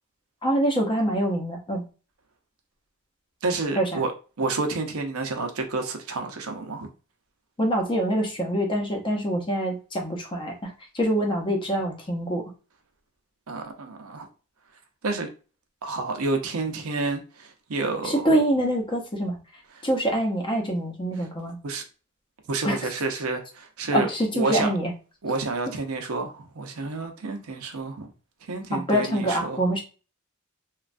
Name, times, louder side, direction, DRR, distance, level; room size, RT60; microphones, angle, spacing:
voice 1, 0.4-1.9 3.8-4.0 7.6-12.4 18.0-19.4 19.8-21.6 22.6-22.8 23.9-24.9 28.7-29.8, right 1 dB, 25° left, 0.7 m, -25 dB
voice 2, 3.4-4.1 4.4-6.9 13.5-14.3 15.0-15.3 15.8-18.3 21.6-21.8 22.5-24.1 24.3-24.7 25.2-28.1 28.5-29.8, right 3 dB, 85° right, 0.6 m, -29 dB
3.1 x 2.3 x 2.5 m
head